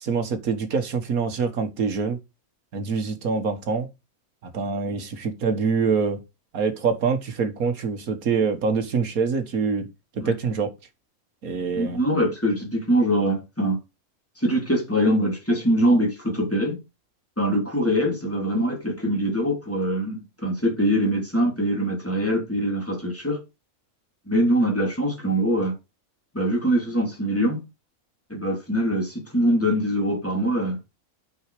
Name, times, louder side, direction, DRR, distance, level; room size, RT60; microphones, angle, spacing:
voice 1, 0.0-2.2 2.7-3.9 4.5-6.2 6.5-9.9 10.3-10.7 11.4-12.0, right 5 dB, 80° right, 1.9 m, -25 dB
voice 2, 11.7-13.8 14.4-16.8 17.4-23.4 24.3-25.7 26.3-27.6 28.3-30.8, equal, 10° left, 3.1 m, -23 dB
9.0 x 5.7 x 4.9 m
omnidirectional pair, 1.5 m